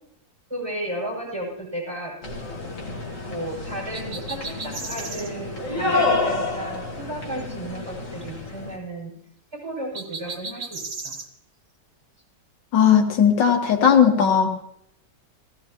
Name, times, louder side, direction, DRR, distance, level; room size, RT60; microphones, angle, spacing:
voice 1, 0.5-2.1 3.3-9.1 9.5-11.1, right 1 dB, 15° right, -5 dB, 6.4 m, -33 dB
sound 1, 2.2-8.7, left 3 dB, 45° left, 2.5 m, -29 dB
sound 2, 3.9-5.3 9.9-11.3, right 4 dB, 60° right, 2.0 m, -35 dB
voice 2, 12.7-14.5, left 7 dB, 90° left, 4 dB, 2.0 m, -17 dB
18.0 x 16.0 x 3.0 m, 0.74 s
omnidirectional pair, 1.9 m